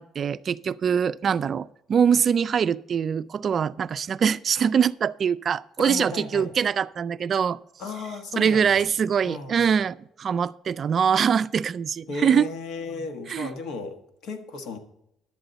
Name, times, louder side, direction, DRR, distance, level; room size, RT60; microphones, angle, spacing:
voice 1, 0.0-7.6 8.4-12.5 13.3-13.5, right 7 dB, 45° right, 16 dB, 0.3 m, -23 dB
voice 2, 5.8-6.5 7.8-8.7 9.2-9.8 12.1-14.8, left 4 dB, 70° left, 6 dB, 1.4 m, -35 dB
11.0 x 9.0 x 4.0 m, 0.80 s
cardioid pair, 95°, 0 cm